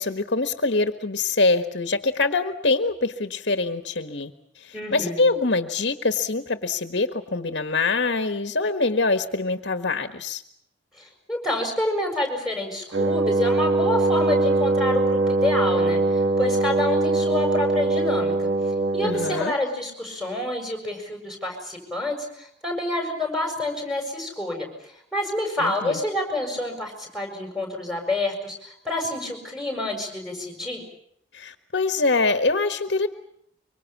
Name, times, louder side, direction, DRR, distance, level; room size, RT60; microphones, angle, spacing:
voice 1, 0.0-10.4 19.0-19.5 25.6-26.0 31.3-33.1, left 3 dB, 70° left, 8 dB, 1.5 m, -24 dB
voice 2, 4.7-5.2 11.0-18.5 18.9-30.8, left 2 dB, ahead, 3 dB, 7.0 m, -28 dB
Wind instrument woodwind instrument, 12.9-19.5, right 3 dB, 80° right, 1.5 m, -22 dB
25.0 x 24.5 x 7.3 m, 0.70 s
head